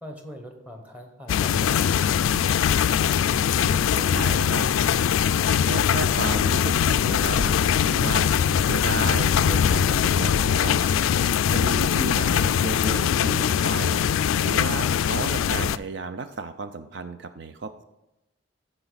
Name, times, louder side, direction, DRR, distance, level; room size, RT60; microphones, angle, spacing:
voice 1, 0.0-2.3, equal, 5° right, 3 dB, 1.1 m, -42 dB
sound 1, 1.3-15.8, left 8 dB, 80° left, 0.3 m, -22 dB
voice 2, 3.4-4.7 5.6-7.4 7.8-10.8 11.5-14.0 14.4-17.8, right 4 dB, 60° right, 9 dB, 0.4 m, -33 dB
sound 2, 6.1-6.3 7.3-7.6 8.3-8.5 9.0-9.3 9.7-9.9 10.8-11.1, equal, 20° right, 2.4 m, -36 dB
14.5 x 5.0 x 4.0 m, 0.94 s
head